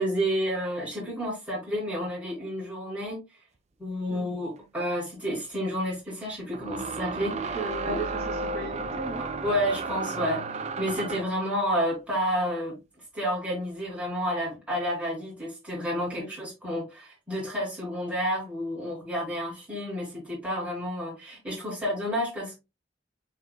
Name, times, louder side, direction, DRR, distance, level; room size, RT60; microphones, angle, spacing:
voice 1, 0.0-3.2 3.8-7.6 7.9-8.0 9.4-12.8 13.1-22.6, equal, 10° right, 2.7 m, -30 dB
sound 1, 4.6-4.7 6.5-11.4, right 3 dB, 35° right, 0.4 m, -33 dB
voice 2, 7.5-9.2 16.1-16.3, right 3 dB, 60° right, 2.5 m, -37 dB
6.7 x 3.2 x 2.2 m
head